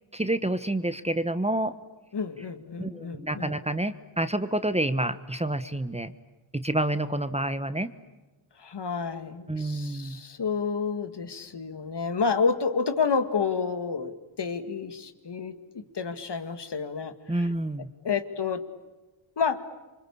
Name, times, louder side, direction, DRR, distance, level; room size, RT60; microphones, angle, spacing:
voice 1, 0.1-1.7 2.8-6.1 6.5-7.9 9.5-10.2 17.3-17.9, right 1 dB, 15° right, 12 dB, 1.1 m, -28 dB
voice 2, 2.1-3.6 8.6-17.5 18.0-18.6 19.4-19.7, left 5 dB, 55° left, 10 dB, 2.1 m, -30 dB
27.5 x 25.0 x 8.5 m, 1.2 s
wide cardioid pair, 85°, 48 cm